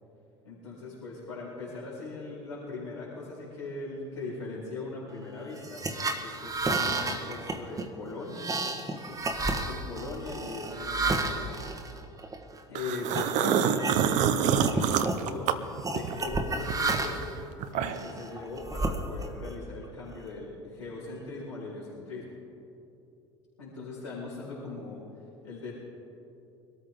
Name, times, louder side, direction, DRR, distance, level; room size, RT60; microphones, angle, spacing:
voice 1, 0.4-5.8 6.2-11.6 12.7-17.3 17.7-22.4 23.6-25.0 25.4-25.8, left 3 dB, 90° left, -12 dB, 4.3 m, -40 dB
sound 1, 5.6-12.6 13.1-13.3 13.7-14.3 14.6-15.2 15.8-17.4 17.9-19.5, right 3 dB, 20° right, 1.5 m, -32 dB
sound 2, 12.7-16.3 16.7-18.2, right 9 dB, 55° right, 0.9 m, -27 dB
23.5 x 13.5 x 3.8 m, 2.8 s
hypercardioid pair, 70°, 15 cm